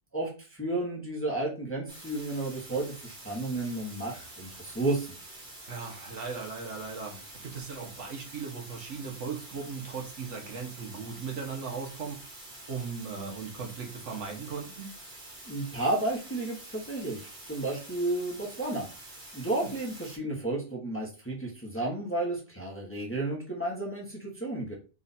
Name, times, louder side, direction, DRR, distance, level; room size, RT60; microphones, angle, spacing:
voice 1, 0.1-5.2 15.5-18.9 19.3-24.7, right 2 dB, 10° left, -3 dB, 0.9 m, -32 dB
sound 1, 1.9-20.2, right 2 dB, 40° right, 1.5 m, -47 dB
voice 2, 5.7-12.2 12.7-14.9 19.6-19.7, right 5 dB, 70° right, 1 dB, 1.3 m, -38 dB
3.7 x 2.4 x 4.1 m, 0.35 s
omnidirectional pair, 1.3 m